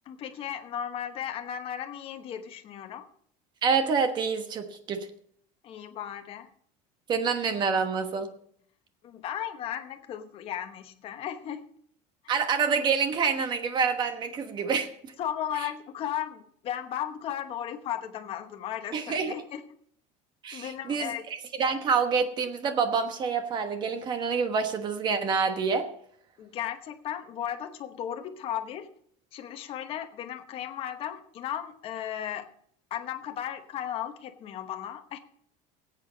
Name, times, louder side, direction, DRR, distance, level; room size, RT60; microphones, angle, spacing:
voice 1, 0.1-3.1 5.6-6.5 9.0-11.6 15.2-19.6 20.5-21.2 26.4-28.9 29.3-32.5 32.9-35.2, left 10 dB, 35° left, 6 dB, 1.1 m, -35 dB
voice 2, 3.6-5.1 7.1-8.3 12.3-15.1 15.6-15.7 18.9-19.3 20.4-25.9, right 5 dB, 25° right, 7 dB, 1.2 m, -27 dB
18.5 x 8.5 x 3.9 m, 0.63 s
cardioid pair, 175°, 17 cm